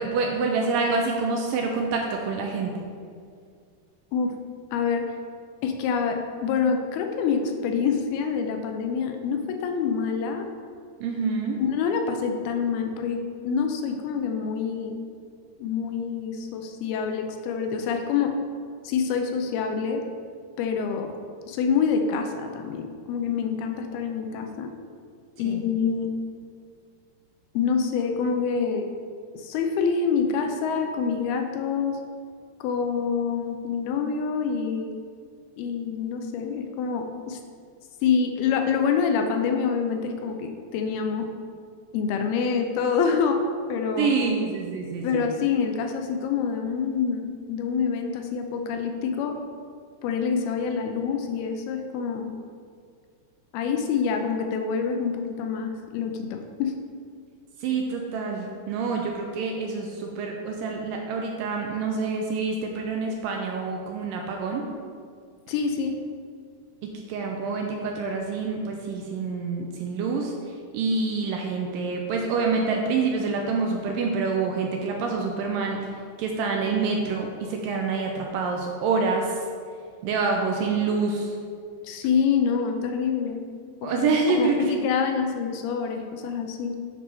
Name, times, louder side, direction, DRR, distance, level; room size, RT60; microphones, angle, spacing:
voice 1, 0.0-2.7 11.0-11.6 25.5-25.6 44.0-45.3 57.6-64.7 66.8-70.3 70.7-75.8 76.2-79.3 80.0-81.3 83.8-84.6, right 4 dB, 85° right, 1 dB, 2.0 m, -27 dB
voice 2, 4.7-5.1 5.6-10.5 11.6-15.0 15.6-18.4 18.8-20.0 20.6-21.2 21.5-24.7 25.4-26.2 27.5-28.9 29.3-32.0 32.6-35.0 35.6-37.4 38.0-41.3 41.9-43.4 43.7-44.2 45.0-49.4 50.0-52.3 53.5-56.8 65.5-66.0 81.8-83.4 83.8-86.8, left 6 dB, 80° left, 5 dB, 2.5 m, -26 dB
8.7 x 4.7 x 5.5 m, 2.2 s
omnidirectional pair, 4.7 m